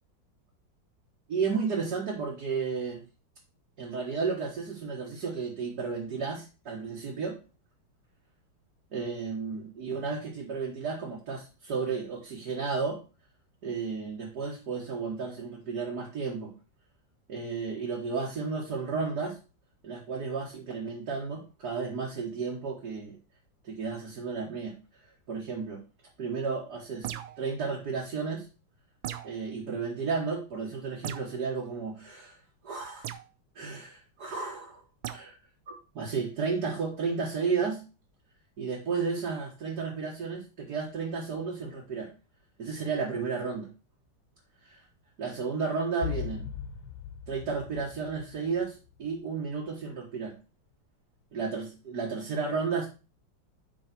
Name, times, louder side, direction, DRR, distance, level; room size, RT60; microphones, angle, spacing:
voice 1, 1.3-3.0 3.8-7.4 8.9-13.0 13.6-16.5 17.3-19.4 19.8-23.2 23.6-24.7 25.3-25.8 26.2-27.1 27.4-28.5 29.2-32.4 32.6-33.1 33.6-34.8 35.1-35.3 35.7-37.8 38.6-42.1 42.6-43.7 44.7-44.8 45.2-46.5 47.3-50.3 51.3-52.9, right 5 dB, 55° right, -3 dB, 2.0 m, -33 dB
sound 1, 27.0-27.5 29.0-29.4 31.0-31.3 33.0-33.3 35.0-35.2, right 12 dB, 90° right, 1.4 m, -37 dB
sound 2, 46.0-48.9, left 9 dB, 85° left, 1.3 m, -38 dB
5.7 x 5.0 x 5.9 m, 0.32 s
omnidirectional pair, 2.1 m